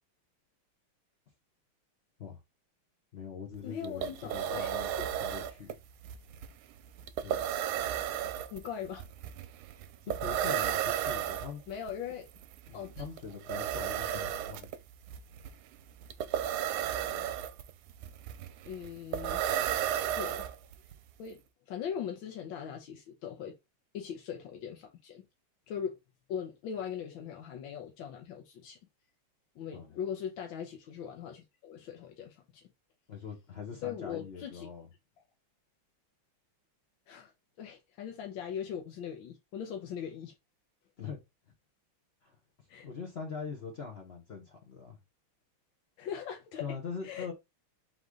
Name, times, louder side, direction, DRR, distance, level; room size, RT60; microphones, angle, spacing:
voice 1, 3.1-4.9 5.2-5.8 7.2-7.4 10.0-11.6 12.7-14.7 17.1-17.3 29.7-29.9 33.1-34.9 41.0-41.2 42.2-42.4 42.8-45.0 46.6-47.3, left 6 dB, 55° left, 0.7 m, -42 dB
sound 1, 3.5-3.6 3.8-20.9, right 10 dB, 75° right, 1.3 m, -34 dB
voice 2, 3.6-4.7 5.0-5.1 8.5-9.0 11.7-12.3 12.7-13.0 18.6-19.4 20.1-20.5 21.2-21.4 21.7-23.5 23.9-25.2 25.7-25.9 26.3-28.8 29.6-32.6 33.8-34.7 37.1-37.3 37.6-40.3 42.7-42.9 46.0-46.7 47.0-47.3, left 8 dB, 70° left, 1.4 m, -40 dB
3.8 x 3.1 x 3.6 m
omnidirectional pair, 2.4 m